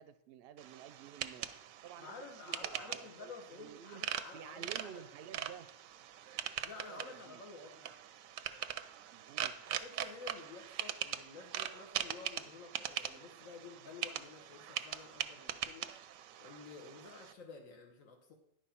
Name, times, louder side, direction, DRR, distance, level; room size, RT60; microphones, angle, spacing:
voice 1, 0.0-1.5 1.8-4.0 4.3-5.7 6.9-7.4 9.1-9.6, right 9 dB, 65° right, 12 dB, 0.6 m, -52 dB
sound 1, 0.6-17.3, right 10 dB, 90° right, 1.0 m, -42 dB
voice 2, 2.0-5.0 6.6-7.9 9.8-16.0 16.4-18.3, left 4 dB, 80° left, 1 dB, 1.4 m, -51 dB
10.0 x 4.8 x 5.6 m, 0.77 s
omnidirectional pair, 1.4 m